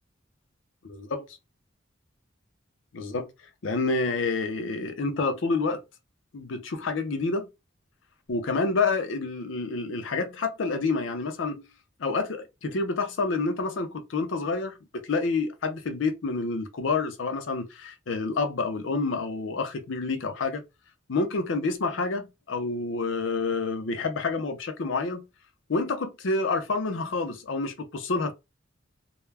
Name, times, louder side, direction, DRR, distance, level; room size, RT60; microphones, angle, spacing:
voice 1, 0.8-1.2 2.9-3.3 3.6-5.8 6.3-7.5 8.3-11.6 12.0-20.6 21.1-25.2 25.7-28.3, left 3 dB, 80° left, 0.5 m, -28 dB
2.3 x 2.1 x 3.2 m
head